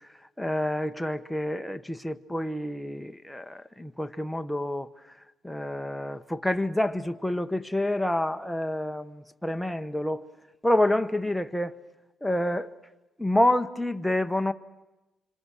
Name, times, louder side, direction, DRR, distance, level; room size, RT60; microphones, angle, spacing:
voice 1, 0.4-4.9 5.4-10.3 10.6-11.8 12.2-12.7 13.2-14.5, left 1 dB, 5° left, 1.0 m, -28 dB
26.0 x 25.5 x 6.3 m
cardioid pair, 90°, 0 cm